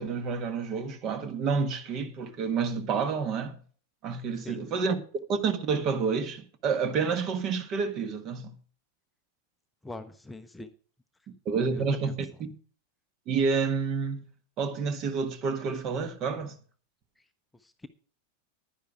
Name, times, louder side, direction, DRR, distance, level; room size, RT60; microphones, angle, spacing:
voice 1, 0.0-3.6 4.0-5.0 5.3-8.5 11.4-12.5 13.3-14.3 14.6-16.5, right 5 dB, 35° right, 1.6 m, -29 dB
voice 2, 4.4-4.7 9.8-10.7 11.7-12.1 17.2-17.3 17.5-17.9, left 2 dB, 5° left, 0.8 m, -43 dB
11.0 x 10.0 x 4.8 m
figure-of-eight pair, 90°, 0 cm